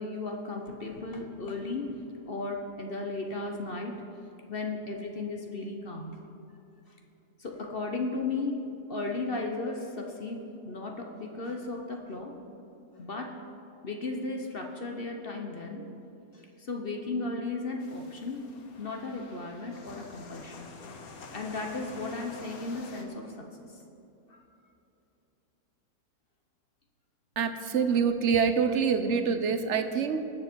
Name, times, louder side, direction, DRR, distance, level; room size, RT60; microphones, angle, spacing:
voice 1, 0.0-2.0 2.3-4.0 4.5-6.2 7.4-8.6 8.9-12.4 13.0-13.4 13.8-15.9 16.3-18.4 18.8-20.7 21.3-23.8 24.3-24.4, left 3 dB, 40° left, 2 dB, 1.0 m, -35 dB
sound 1, 17.8-23.0, left 4 dB, 65° left, 1.5 m, -48 dB
voice 2, 27.4-30.2, right 6 dB, 60° right, 9 dB, 0.8 m, -26 dB
19.5 x 7.2 x 4.5 m, 2.9 s
omnidirectional pair, 1.7 m